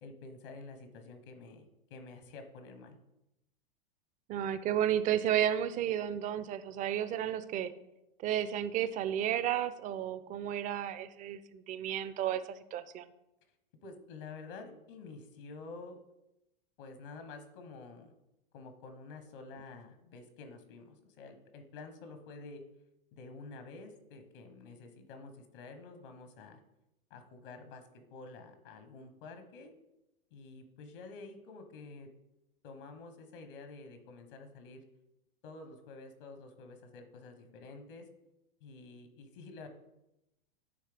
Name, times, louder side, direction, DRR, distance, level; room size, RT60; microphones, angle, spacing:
voice 1, 0.0-3.0 13.8-16.0 16.8-18.1 18.5-22.6 23.1-26.6 27.1-29.7 30.3-32.1 32.6-34.8 35.4-38.1 38.6-39.7, left 3 dB, 65° left, 7 dB, 1.0 m, -49 dB
voice 2, 4.3-7.7 8.2-13.1, right 10 dB, 25° right, 13 dB, 0.4 m, -32 dB
9.4 x 3.2 x 3.4 m, 0.90 s
hypercardioid pair, 110°, 29 cm